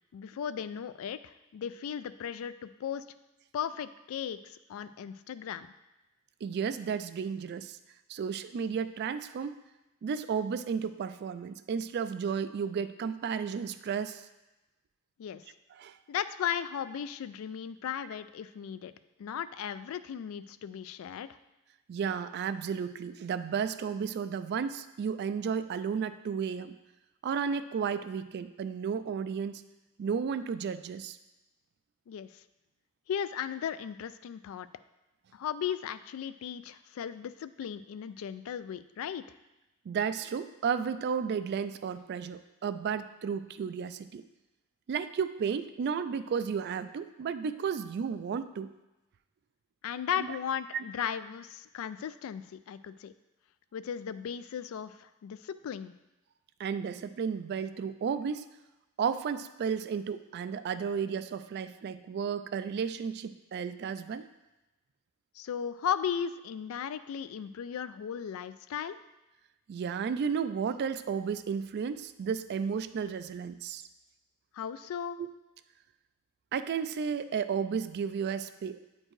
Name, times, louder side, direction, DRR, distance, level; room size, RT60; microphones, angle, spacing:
voice 1, 0.1-3.0 3.5-5.7 15.2-15.4 16.1-18.9 19.2-21.4 32.1-32.3 33.1-34.7 35.3-39.2 49.8-53.1 53.7-55.9 65.4-69.0 74.5-75.2, left 8 dB, 75° left, 14 dB, 0.3 m, -36 dB
voice 2, 6.4-7.8 8.1-9.6 10.0-14.2 15.8-16.0 21.9-26.7 27.2-29.6 30.0-31.2 39.9-44.2 44.9-48.7 50.1-50.3 50.7-50.8 56.6-58.5 59.0-64.3 69.7-73.8 75.2-75.3 76.5-78.8, right 6 dB, 50° right, 12 dB, 0.3 m, -33 dB
8.7 x 4.4 x 3.1 m, 1.0 s
head